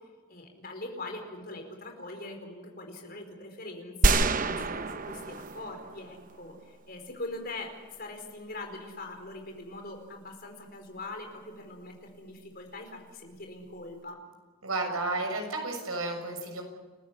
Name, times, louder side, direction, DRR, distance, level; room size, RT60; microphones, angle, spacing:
voice 1, 0.3-14.2, left 2 dB, 45° left, 3 dB, 4.8 m, -42 dB
sound 1, 4.0-6.4, right 3 dB, 40° right, 0.9 m, -27 dB
voice 2, 14.6-16.6, right 2 dB, 85° right, 3 dB, 6.7 m, -32 dB
29.5 x 14.5 x 9.9 m, 1.4 s
head